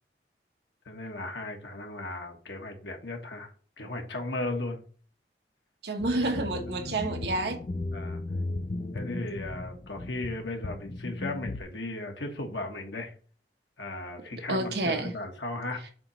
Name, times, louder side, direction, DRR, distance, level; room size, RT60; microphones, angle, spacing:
voice 1, 0.8-3.5 3.8-4.8 6.8-6.9 7.9-8.2 8.9-13.1 13.8-15.8, left 2 dB, 90° left, 1.6 m, -36 dB
voice 2, 5.8-7.7 14.5-15.1, right 2 dB, 70° right, 1.2 m, -29 dB
sound 1, 6.0-11.6, left 2 dB, 35° left, 0.4 m, -36 dB
7.6 x 3.1 x 5.7 m
head